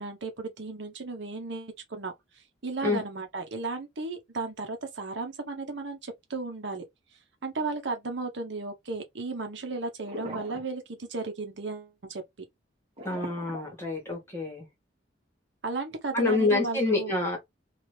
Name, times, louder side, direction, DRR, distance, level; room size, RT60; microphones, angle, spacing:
voice 1, 0.0-6.8 7.4-12.2 15.6-17.1, right 3 dB, 70° right, 0.8 m, -35 dB
sound 1, 10.0-10.7 10.9-11.3 13.0-14.3, right 1 dB, 30° right, 1.2 m, -40 dB
voice 2, 13.0-14.7 16.1-17.4, left 3 dB, 15° left, 1.4 m, -27 dB
2.9 x 2.4 x 3.2 m
head